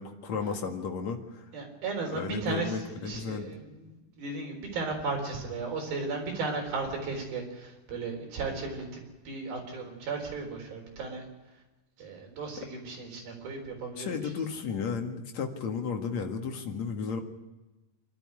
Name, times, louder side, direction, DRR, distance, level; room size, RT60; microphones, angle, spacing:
voice 1, 0.0-1.5 2.1-3.5 12.6-12.7 14.0-17.2, left 5 dB, 50° left, 3 dB, 2.6 m, -33 dB
voice 2, 1.5-11.2 12.0-14.1, right 4 dB, 65° right, 2 dB, 5.7 m, -35 dB
26.0 x 12.5 x 9.6 m, 1.1 s
omnidirectional pair, 4.6 m